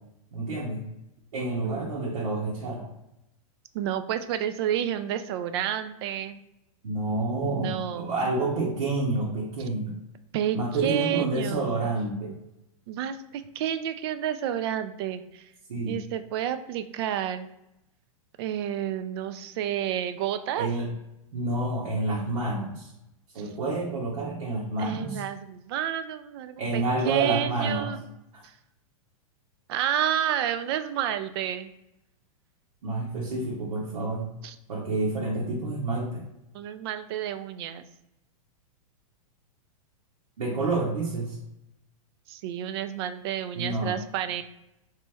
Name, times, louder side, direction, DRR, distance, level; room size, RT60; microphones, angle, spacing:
voice 1, 0.3-0.8 1.3-2.9 6.8-9.9 10.5-12.4 15.7-16.0 20.5-20.9 21.3-22.9 23.3-25.2 26.6-27.9 28.3-28.5 32.8-34.3 34.7-36.2 40.4-41.4 43.5-43.9, right 2 dB, 85° right, -4 dB, 1.1 m, -29 dB
voice 2, 3.7-6.4 7.4-8.1 10.3-11.9 12.9-15.5 15.9-17.5 18.4-20.7 24.8-28.0 28.4-28.5 29.7-31.7 34.4-34.5 36.5-37.9 42.3-44.4, right 10 dB, 45° right, 10 dB, 0.4 m, -30 dB
3.3 x 3.1 x 3.3 m, 0.87 s
hypercardioid pair, 145°, 19 cm